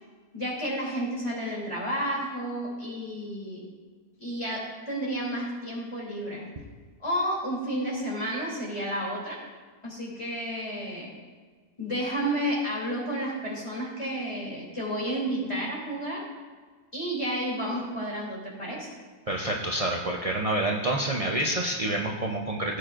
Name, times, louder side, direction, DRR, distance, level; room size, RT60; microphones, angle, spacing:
voice 1, 0.3-3.7 4.2-6.5 7.0-9.4 9.8-11.1 11.8-16.2 16.9-18.9, equal, 20° left, -4 dB, 3.0 m, -31 dB
voice 2, 19.3-22.8, right 1 dB, 45° right, -1 dB, 0.4 m, -28 dB
16.0 x 8.3 x 2.5 m, 1.5 s
omnidirectional pair, 1.7 m